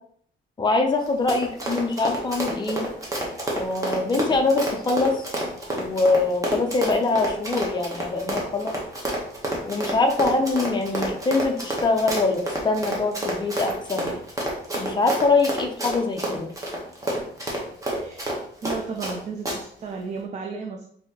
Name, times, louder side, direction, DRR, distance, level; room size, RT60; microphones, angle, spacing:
voice 1, 0.6-2.8 3.5-5.3 5.7-8.7 9.7-14.1 14.7-16.5, left 3 dB, 20° left, 3 dB, 0.5 m, -23 dB
Run, 1.0-19.2 19.5-19.6, right 1 dB, 15° right, 0.9 m, -29 dB
voice 2, 18.0-18.3 18.6-20.9, right 4 dB, 35° right, 2 dB, 0.4 m, -34 dB
5.4 x 2.7 x 2.8 m, 0.63 s
wide cardioid pair, 180°, 20 cm